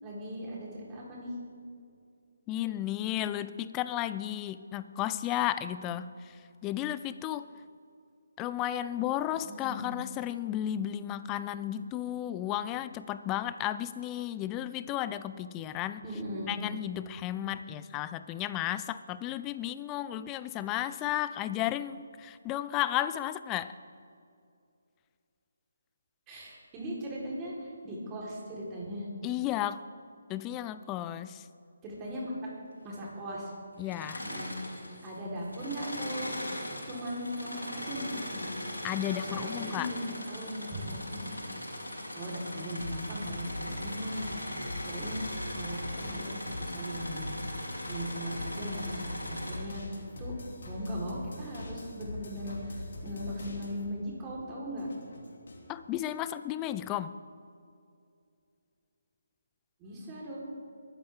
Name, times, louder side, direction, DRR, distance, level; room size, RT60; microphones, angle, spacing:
voice 1, 0.0-1.3 9.5-9.9 16.0-16.5 26.3-29.1 31.8-32.3 32.8-33.5 34.2-36.3 36.9-38.5 39.0-41.4 42.1-47.4 47.8-49.8 50.2-50.3 50.7-54.9 59.8-60.4, equal, 20° right, -5 dB, 4.3 m, -39 dB
voice 2, 2.5-7.5 8.4-16.0 16.5-23.7 29.2-29.8 30.3-31.5 33.8-34.3 38.8-39.9 55.7-57.1, left 12 dB, 15° left, 14 dB, 0.4 m, -33 dB
Engine / Mechanisms, 33.8-35.1 35.4-49.6, left 1 dB, 85° left, 4.3 m, -39 dB
sound 1, 42.8-54.0 54.3-55.7, left 2 dB, 60° left, 2.8 m, -42 dB
22.5 x 13.0 x 3.8 m, 2.5 s
figure-of-eight pair, 145°, 0 cm